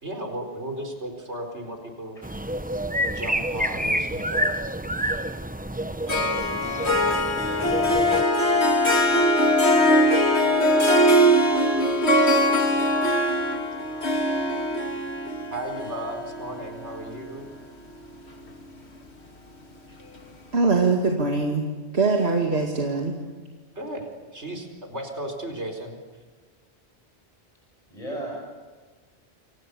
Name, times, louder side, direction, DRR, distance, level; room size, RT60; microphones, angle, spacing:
voice 1, 0.0-2.2 3.0-4.5 6.1-6.9 7.1-7.2 15.5-17.5 19.9-20.0 23.7-24.1 24.3-26.0, right 1 dB, 85° right, 4 dB, 4.9 m, -36 dB
sound 1, 2.2-8.2, equal, 10° right, 0.7 m, -28 dB
Harp, 6.1-17.5, equal, 75° left, 2.9 m, -21 dB
voice 2, 20.5-21.7 21.9-23.1, right 3 dB, 70° right, 1 dB, 2.6 m, -22 dB
voice 3, 27.9-28.3, right 1 dB, 35° left, -2 dB, 6.4 m, -37 dB
29.0 x 25.5 x 7.0 m, 1.4 s
omnidirectional pair, 1.1 m